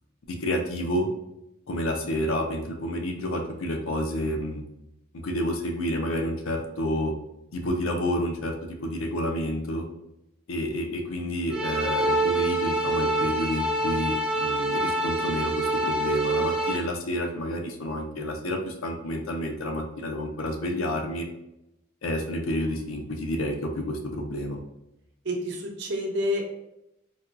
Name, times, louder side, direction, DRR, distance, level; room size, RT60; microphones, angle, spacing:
voice 1, 0.3-1.1 1.7-4.6 5.2-7.1 7.5-8.5 8.8-9.9 10.5-21.2 22.0-24.6, left 1 dB, 80° left, 3 dB, 0.5 m, -29 dB
sound 1, 11.5-16.8, right 1 dB, 5° right, 0.3 m, -26 dB
voice 2, 25.2-26.4, left 1 dB, 55° right, 1 dB, 0.7 m, -28 dB
4.2 x 2.2 x 2.5 m, 0.88 s
head